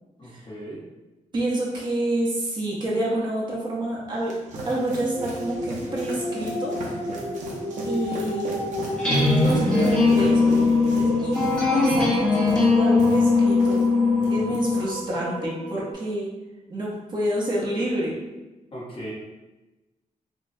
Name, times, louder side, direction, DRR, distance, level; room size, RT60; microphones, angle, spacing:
voice 1, 0.2-0.8 14.2-14.6 18.7-19.1, equal, 40° left, -5 dB, 1.0 m, -38 dB
voice 2, 1.3-4.4 4.7-6.7 7.8-8.6 9.3-13.8 14.3-16.3 16.7-18.2, right 1 dB, 35° right, -5 dB, 0.8 m, -28 dB
sound 1, 3.9-13.9 14.2-14.6, right 2 dB, 80° right, 0.7 m, -36 dB
sound 2, 4.5-15.9, equal, 65° left, 1.1 m, -32 dB
sound 3, 9.0-14.9, left 3 dB, 5° left, 0.8 m, -20 dB
5.2 x 2.2 x 2.7 m, 1.1 s
wide cardioid pair, 175°, 13 cm